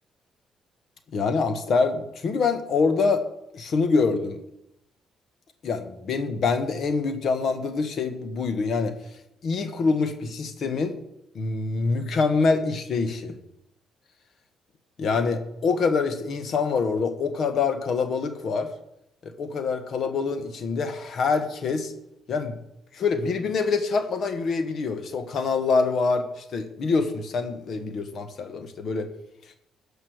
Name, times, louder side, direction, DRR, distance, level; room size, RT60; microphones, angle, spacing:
voice 1, 1.1-3.3 3.5-4.4 5.6-8.9 9.4-11.0 11.3-13.4 15.0-18.7 19.2-21.9 22.3-22.6 22.9-29.1, left 4 dB, 60° left, 9 dB, 1.2 m, -25 dB
13.0 x 5.2 x 6.3 m, 0.81 s
cardioid pair, 90°, 0 cm